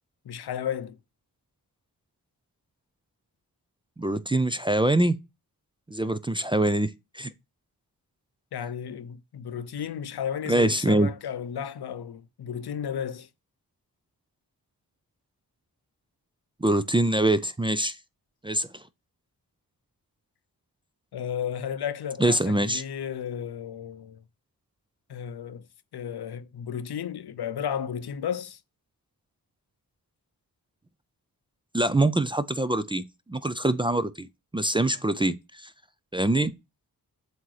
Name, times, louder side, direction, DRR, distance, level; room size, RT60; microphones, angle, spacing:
voice 1, 0.3-1.0 8.5-13.3 21.1-24.2 25.1-25.6 25.9-28.6, left 8 dB, 75° left, 0.7 m, -33 dB
voice 2, 4.0-5.2 5.9-7.3 10.5-11.1 16.6-18.0 18.4-18.7 22.2-22.8 31.7-34.3 34.5-35.7 36.1-36.5, right 1 dB, 15° right, 0.4 m, -24 dB
7.6 x 2.8 x 4.7 m
wide cardioid pair, 105°, 39 cm